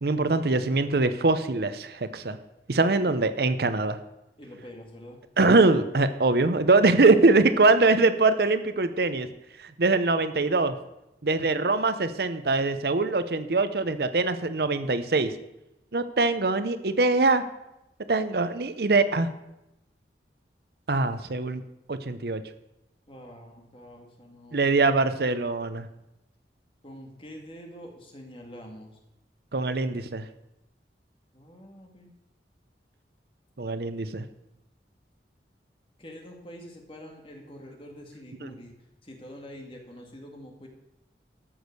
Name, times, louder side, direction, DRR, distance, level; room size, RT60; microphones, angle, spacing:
voice 1, 0.0-2.4 2.7-4.0 5.4-9.3 9.8-10.8 11.2-15.3 15.9-17.4 18.1-19.3 20.9-21.6 21.9-22.4 24.5-25.9 29.5-30.2 33.6-34.2 38.4-38.5, right 3 dB, 65° right, 11 dB, 0.7 m, -23 dB
voice 2, 4.4-5.2 23.1-25.0 26.8-29.0 31.3-32.1 36.0-38.7 39.0-40.7, equal, 30° left, 2 dB, 2.2 m, -45 dB
13.5 x 6.4 x 6.6 m, 0.91 s
head